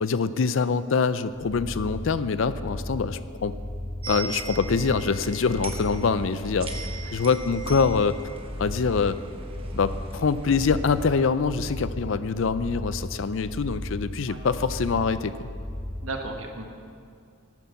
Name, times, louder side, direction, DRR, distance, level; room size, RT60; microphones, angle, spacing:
voice 1, 0.0-3.6 4.1-6.7 7.1-8.2 8.6-9.2 9.7-15.5, left 5 dB, 65° left, 14 dB, 0.5 m, -24 dB
sound 1, 1.3-16.1, left 1 dB, 5° right, 3.0 m, -36 dB
sound 2, 4.0-11.2, right 3 dB, 25° right, 1.1 m, -39 dB
voice 2, 16.0-16.6, right 2 dB, 75° right, 3 dB, 1.4 m, -35 dB
11.0 x 9.3 x 6.9 m, 2.3 s
head